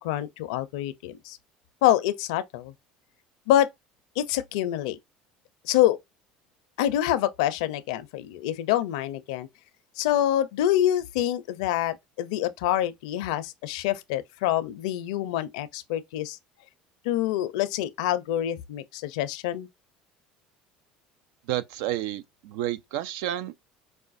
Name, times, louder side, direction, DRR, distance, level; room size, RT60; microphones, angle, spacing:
voice 1, 0.0-1.4 1.8-2.7 3.5-3.7 4.2-5.0 5.6-6.0 6.8-9.5 10.0-16.4 17.0-19.7, left 12 dB, 85° left, 0.5 m, -26 dB
voice 2, 21.5-23.6, right 13 dB, 80° right, 0.4 m, -30 dB
4.8 x 2.1 x 2.5 m
supercardioid pair, 105°, 3 cm